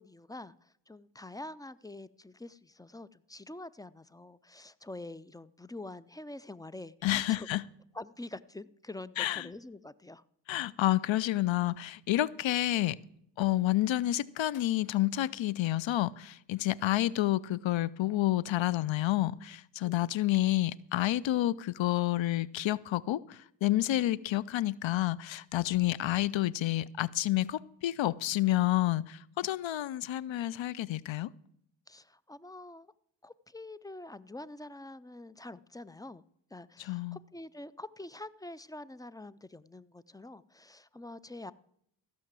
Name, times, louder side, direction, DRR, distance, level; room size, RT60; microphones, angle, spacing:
voice 1, 0.0-7.5 7.9-10.2 19.8-20.2 31.9-32.9 33.2-36.2 36.5-41.5, left 2 dB, 10° left, 0.4 m, -46 dB
voice 2, 7.0-7.6 9.2-9.5 10.5-13.0 13.4-31.3 36.8-37.2, left 15 dB, 75° left, 0.5 m, -29 dB
15.0 x 5.9 x 7.5 m
cardioid pair, 60°, 47 cm